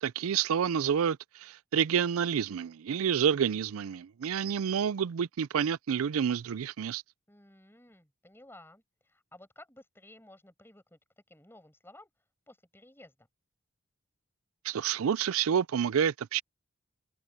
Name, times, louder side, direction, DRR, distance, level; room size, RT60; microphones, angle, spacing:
voice 1, 0.0-7.0 14.6-16.4, right 7 dB, 85° right, 0.4 m, -29 dB
voice 2, 7.3-11.0 11.3-12.1 12.5-13.3, left 1 dB, 10° left, 5.5 m, -55 dB
head